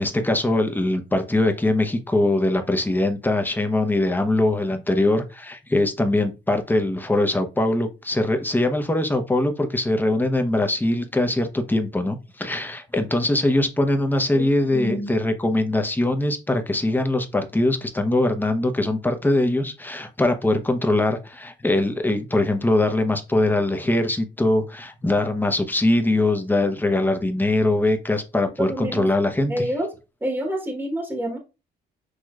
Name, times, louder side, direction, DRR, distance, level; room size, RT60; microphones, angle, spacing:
voice 1, 0.0-29.6, left 1 dB, 10° left, 6 dB, 0.8 m, -22 dB
voice 2, 14.7-15.1 28.6-29.1 29.5-29.9 30.2-31.4, equal, 10° right, 2 dB, 1.2 m, -27 dB
6.4 x 3.0 x 2.4 m, 0.28 s
cardioid pair, 90°, 20 cm